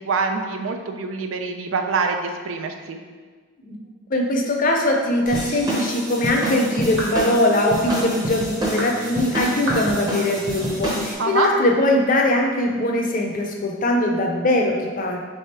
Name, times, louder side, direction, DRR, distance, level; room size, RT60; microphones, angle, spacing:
voice 1, 0.0-3.0 11.2-11.5, right 4 dB, 80° right, 5 dB, 0.4 m, -25 dB
voice 2, 4.1-15.2, left 1 dB, 45° left, 1 dB, 0.6 m, -21 dB
sound 1, 5.3-11.1, equal, 20° right, 0.8 m, -27 dB
sound 2, 7.0-7.2 7.9-8.1 8.8-9.0 9.7-9.9 10.6-10.7 11.4-11.7, equal, 60° right, 1.1 m, -29 dB
3.5 x 3.4 x 4.2 m, 1.5 s
head